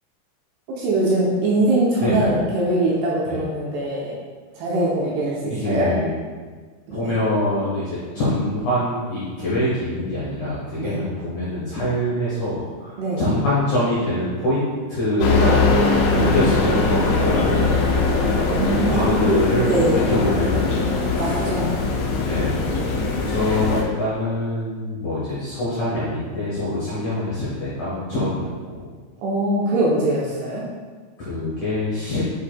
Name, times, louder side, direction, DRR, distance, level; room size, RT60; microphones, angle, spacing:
voice 1, 0.7-4.1 4.5-5.9 6.9-7.1 10.8-11.0 13.0-13.2 16.1-16.7 18.5-19.3 19.7-20.1 21.2-21.7 29.2-30.6, right 1 dB, 75° right, -5 dB, 2.5 m, -22 dB
voice 2, 5.5-6.1 6.9-15.7 16.1-17.9 18.6-20.8 21.1-21.4 22.3-22.5 23.3-28.8 31.2-32.2, left 1 dB, 65° left, -9 dB, 1.9 m, -24 dB
sound 1, 15.2-23.8, left 3 dB, 85° left, 3.3 m, -21 dB
8.3 x 5.4 x 2.2 m, 1.5 s
omnidirectional pair, 5.4 m